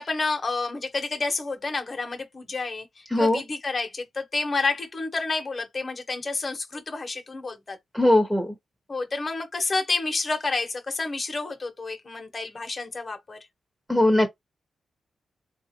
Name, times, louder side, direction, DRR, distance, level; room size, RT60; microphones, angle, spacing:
voice 1, 0.0-7.8 8.9-13.4, left 3 dB, 30° left, 1.0 m, -29 dB
voice 2, 3.1-3.4 7.9-8.5 13.9-14.3, left 1 dB, 5° right, 0.9 m, -20 dB
3.6 x 2.4 x 2.9 m
wide cardioid pair, 125°, 0 cm